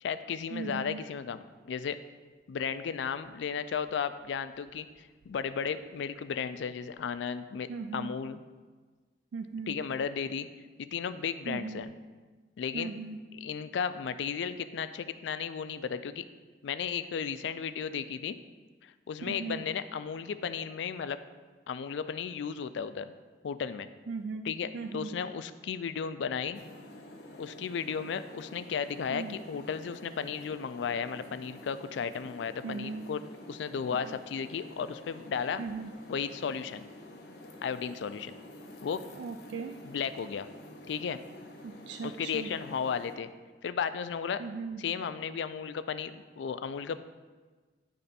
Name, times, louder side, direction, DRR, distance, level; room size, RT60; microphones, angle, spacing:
voice 1, 0.0-2.0 2.5-8.4 9.7-10.5 10.8-11.9 12.6-12.9 13.3-16.2 16.6-18.4 18.8-21.2 21.7-23.1 23.4-23.9 24.4-26.6 27.4-35.6 36.1-36.9 37.6-38.3 38.8-39.0 39.8-40.5 40.9-41.2 42.0-43.3 43.6-44.4 44.8-47.0, left 6 dB, 80° left, 13 dB, 0.3 m, -34 dB
voice 2, 0.5-1.0 7.7-8.1 9.3-9.7 11.5-11.8 12.7-13.2 19.2-19.6 24.1-24.5 24.7-25.1 29.1-29.3 32.6-33.0 35.6-35.9 39.2-39.7 41.6-42.5 44.4-44.8, right 4 dB, 80° right, 6 dB, 0.3 m, -38 dB
sound 1, 26.5-43.2, left 1 dB, 60° left, 0.8 m, -49 dB
9.9 x 3.3 x 4.1 m, 1.4 s
head